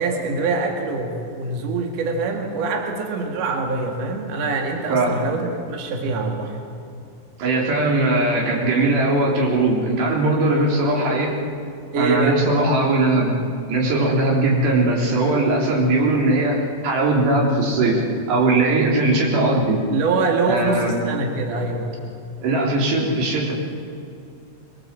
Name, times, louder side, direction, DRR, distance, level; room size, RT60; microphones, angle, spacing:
voice 1, 0.0-6.6 11.9-12.4 19.9-22.0, right 3 dB, 55° right, 1 dB, 3.2 m, -24 dB
voice 2, 4.9-5.2 7.4-11.3 12.0-13.3 13.7-18.0 18.3-19.8 20.5-20.9 22.4-23.5, right 2 dB, 80° right, -2 dB, 5.7 m, -19 dB
23.5 x 22.5 x 7.5 m, 2.4 s
omnidirectional pair, 4.9 m